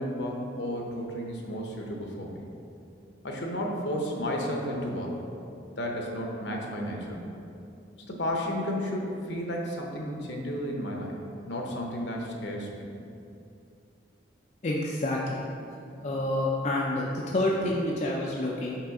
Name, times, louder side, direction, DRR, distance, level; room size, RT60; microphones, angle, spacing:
voice 1, 0.0-2.4 3.2-5.1 5.8-7.3 8.0-11.1 11.4-12.8, equal, 65° left, 0 dB, 0.8 m, -32 dB
voice 2, 14.6-15.4 16.0-18.8, left 1 dB, 40° left, -4 dB, 0.4 m, -28 dB
6.0 x 3.3 x 4.8 m, 2.6 s
head